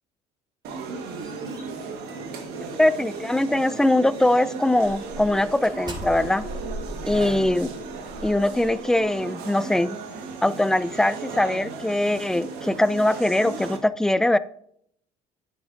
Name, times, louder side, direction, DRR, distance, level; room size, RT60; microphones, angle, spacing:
sound 1, 0.6-13.8, right 4 dB, 70° right, 1.5 m, -36 dB
sound 2, 0.9-3.7 4.1-4.4 4.8-9.0, equal, 25° right, 3.2 m, -40 dB
voice 1, 2.8-6.5 7.1-7.7 8.2-10.0 10.4-14.4, left 1 dB, 5° left, 16 dB, 0.4 m, -22 dB
11.0 x 8.5 x 2.6 m, 0.70 s
supercardioid pair, 70°, 17 cm